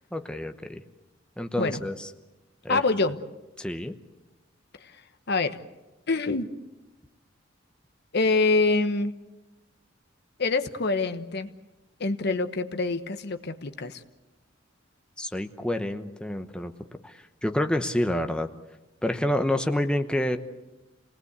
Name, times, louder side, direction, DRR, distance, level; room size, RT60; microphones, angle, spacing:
voice 1, 0.1-0.8 1.4-1.9 2.6-2.8 3.6-3.9 15.2-16.7 17.0-17.1 17.4-18.5 19.0-20.4, left 1 dB, 5° left, 6 dB, 0.9 m, -28 dB
voice 2, 2.7-3.2 4.8-4.9 5.3-5.6 6.1-6.5 8.1-9.1 10.4-11.5 12.0-14.0, left 3 dB, 60° left, 9 dB, 1.2 m, -25 dB
28.0 x 19.0 x 8.2 m, 1.1 s
head